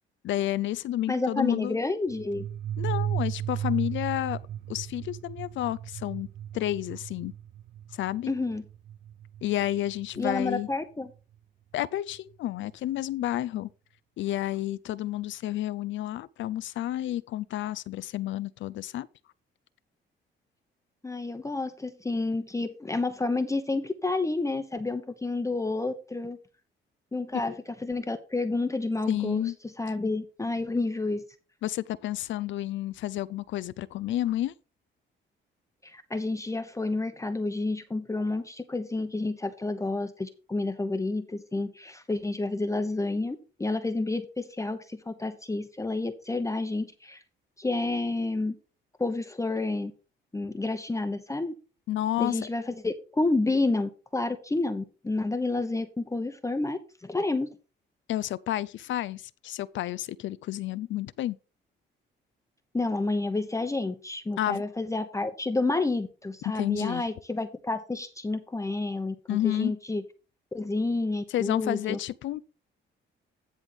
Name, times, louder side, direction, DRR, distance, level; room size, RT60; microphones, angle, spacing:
voice 1, 0.2-1.8 2.8-4.4 4.7-6.3 6.5-7.3 7.9-8.3 9.4-10.7 11.7-13.7 14.2-19.1 27.5-27.6 29.1-29.5 31.6-34.5 51.9-52.4 58.1-61.4 64.4-64.6 66.5-67.0 69.3-69.7 71.3-72.4, left 13 dB, 70° left, 0.5 m, -30 dB
voice 2, 1.1-2.5 8.3-8.6 10.2-11.1 21.0-26.4 27.1-31.2 35.8-47.2 47.6-48.6 49.0-49.9 50.3-51.5 52.2-57.5 62.7-70.0 70.5-72.0, left 2 dB, 15° left, 0.9 m, -30 dB
sound 1, 2.1-10.5, right 10 dB, 70° right, 0.6 m, -35 dB
10.5 x 3.5 x 6.1 m
cardioid pair, 90°, 20 cm